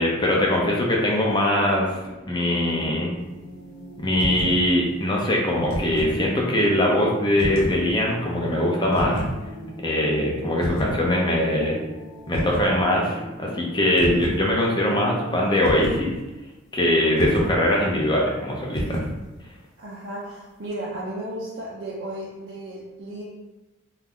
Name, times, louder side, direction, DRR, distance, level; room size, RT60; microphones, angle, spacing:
voice 1, 0.0-1.9 2.3-3.1 4.0-9.3 9.8-11.8 12.3-16.1 16.7-19.0, left 1 dB, 20° left, -2 dB, 0.6 m, -22 dB
sound 1, 0.7-15.6, right 1 dB, 25° right, 1.0 m, -40 dB
sound 2, 4.1-4.6 5.5-6.2 7.4-7.8 8.9-9.4 10.6-11.0 12.3-12.8 14.0-14.4 15.6-16.1 17.2-17.6 18.7-19.2, equal, 75° left, 0.8 m, -28 dB
voice 2, 19.8-23.2, right 1 dB, 60° right, -6 dB, 0.5 m, -34 dB
2.7 x 2.3 x 3.5 m, 1.1 s
head